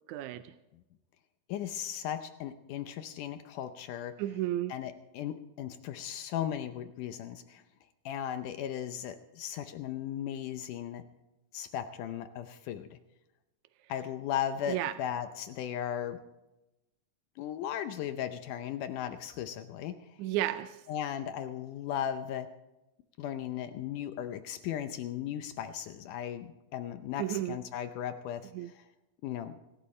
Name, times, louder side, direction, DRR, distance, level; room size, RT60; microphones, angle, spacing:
voice 1, 0.1-0.5 4.2-4.7 14.7-14.9 20.2-20.8 27.2-27.6 28.5-28.7, right 13 dB, 80° right, 10 dB, 1.8 m, -32 dB
voice 2, 1.5-4.1 4.7-7.6 8.1-11.0 11.5-13.0 13.9-16.2 17.4-20.0 20.9-22.5 23.2-28.8 29.2-29.5, left 10 dB, 75° left, 9 dB, 2.2 m, -36 dB
26.0 x 12.5 x 3.2 m, 0.98 s
omnidirectional pair, 3.8 m